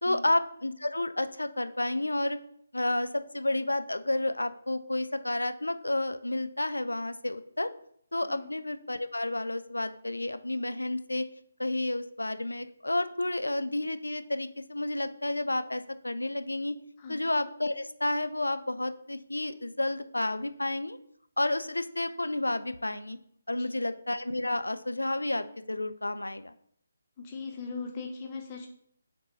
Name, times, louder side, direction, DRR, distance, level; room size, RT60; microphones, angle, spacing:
voice 1, 0.0-2.4 2.7-7.7 8.1-11.3 11.6-16.8 17.1-21.0 21.4-23.2 23.5-26.5, left 1 dB, 80° left, 11 dB, 0.4 m, -31 dB
voice 2, 27.2-28.7, left 4 dB, 25° left, 2 dB, 0.8 m, -39 dB
6.6 x 3.7 x 4.0 m, 0.64 s
figure-of-eight pair, 145°, 0 cm